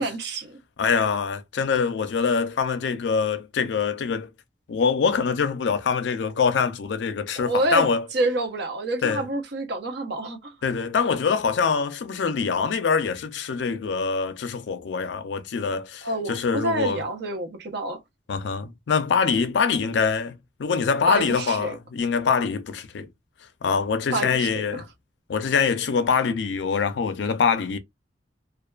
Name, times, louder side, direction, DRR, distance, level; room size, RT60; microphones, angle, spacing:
voice 1, 0.0-0.6 7.4-7.9 8.1-10.5 16.0-18.0 21.1-21.8 24.1-24.6, right 1 dB, 65° right, 0.7 m, -27 dB
voice 2, 0.8-4.3 4.7-8.1 9.0-9.2 10.6-17.0 18.3-23.1 23.6-24.9 25.3-27.8, left 5 dB, 75° left, 0.4 m, -24 dB
2.4 x 2.2 x 2.3 m
head